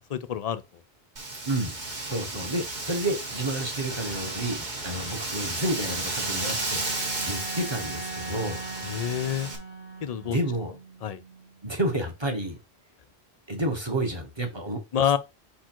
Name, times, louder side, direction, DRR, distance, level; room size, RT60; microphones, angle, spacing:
voice 1, 0.1-0.6 8.8-9.5 10.0-10.4 11.0-11.2 14.9-15.2, left 9 dB, 55° left, 0.4 m, -27 dB
Wind, 1.2-9.6, right 2 dB, 45° right, 1.4 m, -33 dB
voice 2, 2.0-8.6 10.2-10.7 11.6-12.6 13.5-15.2, right 1 dB, 25° right, 1.2 m, -30 dB
sound 1, 5.2-11.7, right 3 dB, 75° right, 1.6 m, -40 dB
4.8 x 4.4 x 4.5 m
omnidirectional pair, 1.1 m